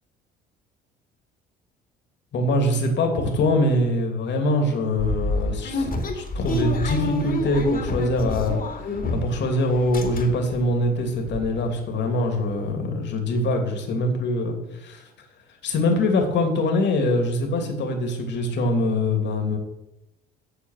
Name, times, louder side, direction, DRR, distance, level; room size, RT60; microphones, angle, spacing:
voice 1, 2.3-15.1 15.6-19.6, left 1 dB, 60° left, 4 dB, 2.7 m, -23 dB
sound 1, 5.0-9.5 9.7-10.6 11.0-11.1 11.3-11.5, left 2 dB, 45° left, 2.5 m, -28 dB
8.6 x 8.0 x 6.5 m, 0.91 s
hypercardioid pair, 65°, 21 cm